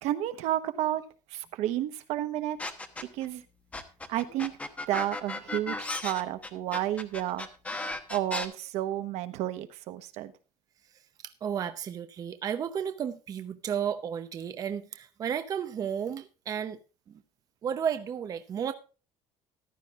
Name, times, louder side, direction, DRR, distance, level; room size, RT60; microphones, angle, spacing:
voice 1, 0.0-1.0 1.3-2.6 3.1-3.4 4.1-4.5 4.9-7.5 8.1-10.3, right 13 dB, 70° right, 1.1 m, -31 dB
sound 1, 2.6-3.2 3.7-8.4, left 2 dB, 10° left, 1.0 m, -35 dB
voice 2, 10.9-16.8 17.1-17.2 17.6-18.7, right 8 dB, 30° right, 0.7 m, -33 dB
14.5 x 11.5 x 2.4 m
cardioid pair, 160°, 12 cm